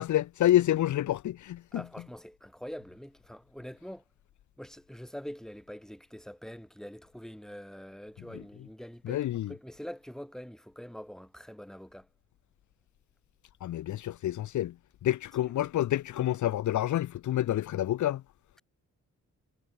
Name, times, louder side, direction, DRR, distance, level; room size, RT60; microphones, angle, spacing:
voice 1, 0.0-1.8 9.0-9.5 13.6-14.7 15.0-18.2, left 13 dB, 80° left, 0.8 m, -28 dB
voice 2, 1.7-4.0 4.6-12.1, equal, ahead, 5.4 m, -44 dB
cardioid pair, 125°, 29 cm